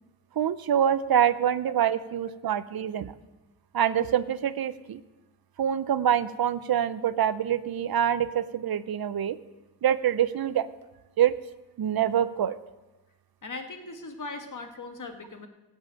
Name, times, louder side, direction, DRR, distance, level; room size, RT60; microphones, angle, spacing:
voice 1, 0.4-3.1 3.7-5.0 5.6-9.4 9.8-10.7 11.2-11.3 11.8-12.6, right 9 dB, 60° right, 15 dB, 0.6 m, -25 dB
voice 2, 13.4-15.5, left 3 dB, 45° left, 6 dB, 1.6 m, -39 dB
15.0 x 5.5 x 9.0 m, 1.1 s
cardioid pair, 75°, 41 cm